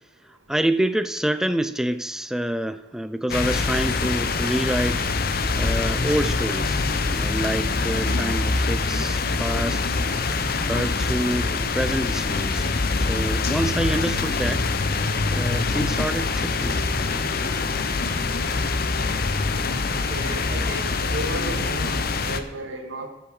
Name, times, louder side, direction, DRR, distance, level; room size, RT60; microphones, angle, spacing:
voice 1, 0.5-5.1 5.6-6.8 7.1-9.8 10.7-14.7 15.3-16.8, right 1 dB, 5° right, 12 dB, 0.4 m, -27 dB
sound 1, 3.3-22.4, left 3 dB, 50° left, 0.8 m, -24 dB
voice 2, 19.9-23.1, right 2 dB, 90° right, 4 dB, 1.9 m, -34 dB
14.5 x 5.8 x 6.5 m, 1.0 s
head